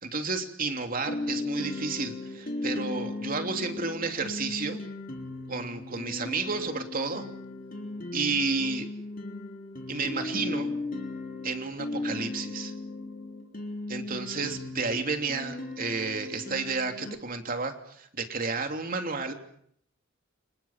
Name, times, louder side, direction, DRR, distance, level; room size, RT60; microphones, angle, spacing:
voice 1, 0.0-4.8 5.5-7.2 8.1-8.9 9.9-10.7 11.4-12.7 13.9-19.3, right 4 dB, 45° right, 5 dB, 3.2 m, -31 dB
sound 1, 1.1-17.2, left 2 dB, 45° left, 3.6 m, -37 dB
30.0 x 26.0 x 7.5 m, 0.70 s
head